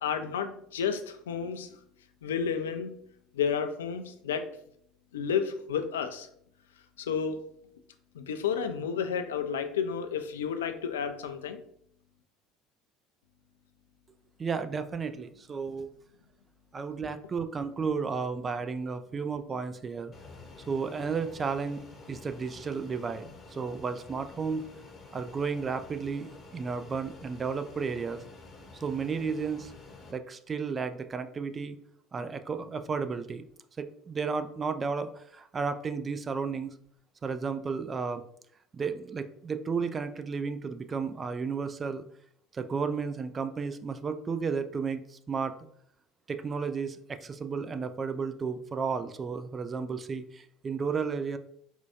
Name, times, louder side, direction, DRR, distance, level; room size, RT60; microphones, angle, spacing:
voice 1, 0.0-1.7 2.2-2.9 3.3-4.5 5.1-6.3 7.0-7.4 8.1-11.6, left 7 dB, 75° left, 8 dB, 0.3 m, -31 dB
voice 2, 14.4-15.9 16.7-20.1 20.7-24.7 25.1-28.2 28.8-29.7 30.1-31.8 32.1-33.4 33.8-36.7 37.2-38.2 38.7-42.0 42.5-45.5 46.3-51.4, right 5 dB, 30° right, 10 dB, 0.3 m, -33 dB
Fixed-wing aircraft airplane, 20.1-30.1, left 3 dB, 30° left, 0.8 m, -49 dB
4.3 x 2.2 x 2.7 m, 0.67 s
figure-of-eight pair, 65°, 0 cm